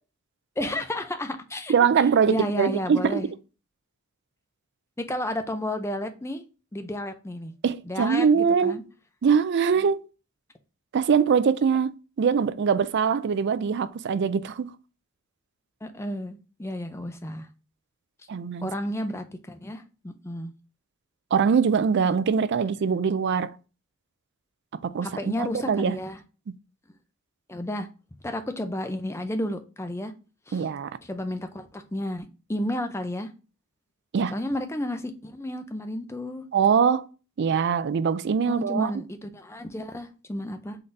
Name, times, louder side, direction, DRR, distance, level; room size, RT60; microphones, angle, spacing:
voice 1, 0.6-1.7 2.3-3.3 5.0-6.4 6.7-7.5 7.9-8.8 15.8-17.5 18.6-20.5 25.0-26.2 27.5-27.9 28.2-30.1 30.5-30.7 31.0-32.2 32.5-33.3 34.3-36.5 38.4-40.8, left 1 dB, 10° left, 0.5 m, -32 dB
voice 2, 1.7-3.2 7.6-8.8 9.2-10.0 10.9-14.8 18.3-18.7 21.3-23.5 24.8-26.0 26.5-26.6 30.5-30.9 34.1-34.4 36.5-37.1 37.4-38.9, right 6 dB, 55° right, 0.4 m, -23 dB
3.9 x 3.9 x 3.3 m
head